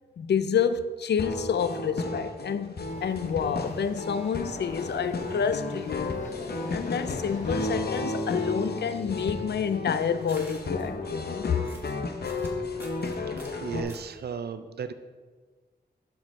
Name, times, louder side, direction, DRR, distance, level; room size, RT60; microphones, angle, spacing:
voice 1, 0.2-6.2 6.7-11.6, left 7 dB, 90° left, 0.4 m, -28 dB
sound 1, 1.2-13.8, left 3 dB, 70° left, 0.8 m, -33 dB
sound 2, 2.9-8.6, left 2 dB, 45° left, 0.9 m, -43 dB
sound 3, 8.9-14.2, equal, 15° right, 1.8 m, -52 dB
voice 2, 13.4-14.9, right 6 dB, 70° right, 0.4 m, -35 dB
12.0 x 4.6 x 3.7 m
wide cardioid pair, 60°, 17 cm